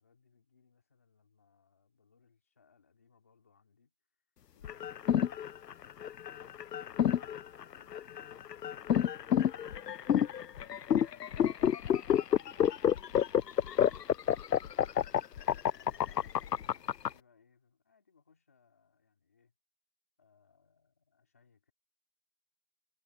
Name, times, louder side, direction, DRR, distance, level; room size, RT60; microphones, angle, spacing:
voice 1, 0.0-3.9 4.5-6.3 6.9-11.6 12.0-14.7 15.8-19.5 20.2-21.7, left 5 dB, 10° left, 2.9 m, -69 dB
sound 1, 4.6-17.1, left 9 dB, 85° left, 0.6 m, -29 dB
figure-of-eight pair, 175°, 47 cm